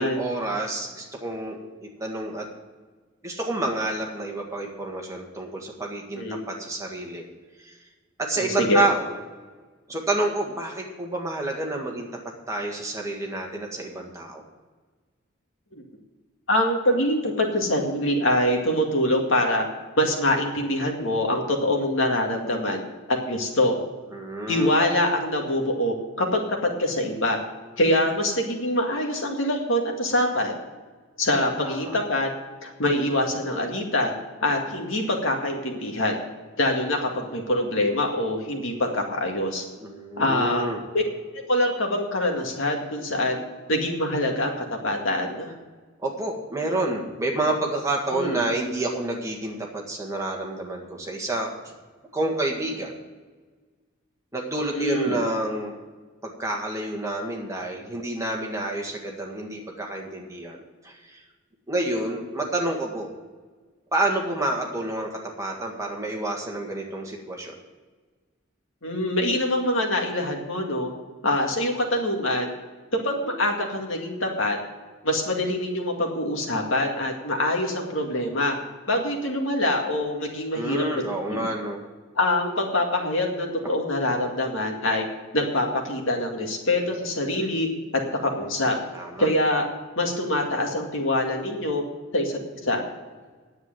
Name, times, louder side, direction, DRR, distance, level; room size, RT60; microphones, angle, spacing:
voice 1, 0.0-1.6 2.0-2.5 3.2-7.3 7.6-7.8 8.2-9.1 9.9-12.1 12.5-14.4 24.1-24.7 31.6-31.9 39.8-40.8 46.0-51.7 52.1-52.9 54.3-55.7 56.2-60.6 60.8-61.2 61.7-63.1 63.9-67.6 80.5-81.8 88.9-89.3, right 2 dB, 15° right, 0 dB, 1.8 m, -29 dB
voice 2, 8.4-8.9 15.8-15.9 16.5-19.6 20.0-22.8 23.1-23.8 24.5-26.4 26.8-27.4 27.8-30.6 31.2-32.3 32.6-34.1 34.4-36.2 36.6-39.7 40.2-40.7 40.9-41.0 41.5-43.4 43.7-44.5 44.8-45.5 48.1-48.4 54.7-55.2 68.8-70.9 71.2-72.5 73.0-74.6 75.0-78.6 78.9-80.8 81.3-81.5 82.2-85.1 85.3-87.7 88.1-88.8 89.2-89.6 90.0-91.8 92.1-92.8, left 1 dB, 70° left, 2 dB, 2.1 m, -24 dB
9.8 x 8.0 x 9.1 m, 1.4 s
head